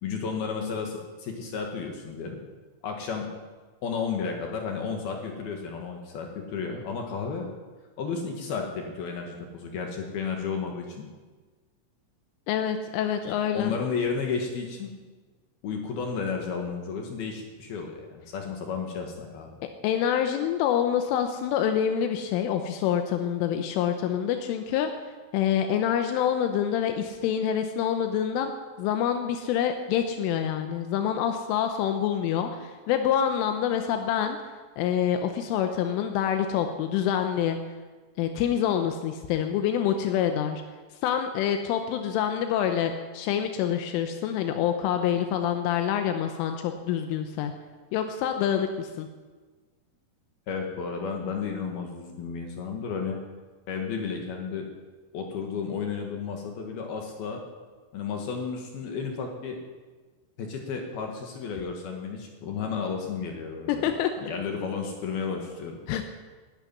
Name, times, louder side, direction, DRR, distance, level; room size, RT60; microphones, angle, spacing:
voice 1, 0.0-2.4 2.8-3.3 3.8-7.5 8.0-11.1 13.2-14.9 15.6-19.6 50.5-53.2 53.7-54.7 55.1-57.4 57.9-59.6 60.4-63.8 64.2-65.8, left 5 dB, 60° left, 2 dB, 2.9 m, -32 dB
voice 2, 12.5-13.7 19.8-24.9 25.3-28.5 28.8-34.4 34.8-37.6 38.2-40.6 41.0-47.5 47.9-49.1 63.7-64.1 65.9-66.0, left 9 dB, 85° left, 6 dB, 3.3 m, -26 dB
13.0 x 11.5 x 9.8 m, 1.3 s
omnidirectional pair, 5.9 m